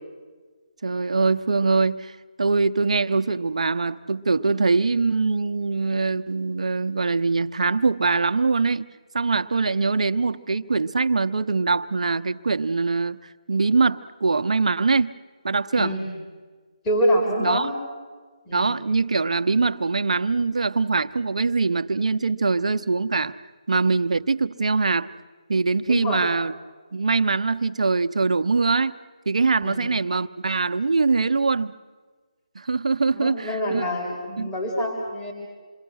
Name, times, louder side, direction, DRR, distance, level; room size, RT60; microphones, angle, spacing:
voice 1, 0.8-2.1 2.4-8.9 9.1-13.2 13.5-15.1 15.4-15.9 17.4-17.7 18.5-23.4 23.7-25.1 25.5-26.5 26.9-28.9 29.3-31.7 32.5-33.8 34.4-34.5, right 4 dB, 70° right, 10 dB, 0.8 m, -23 dB
voice 2, 15.8-16.1 16.8-17.8 18.5-18.7 25.9-26.2 29.6-29.9 33.1-35.3, equal, 15° left, -3 dB, 3.5 m, -26 dB
27.5 x 23.0 x 6.4 m, 1.4 s
figure-of-eight pair, 160°, 4 cm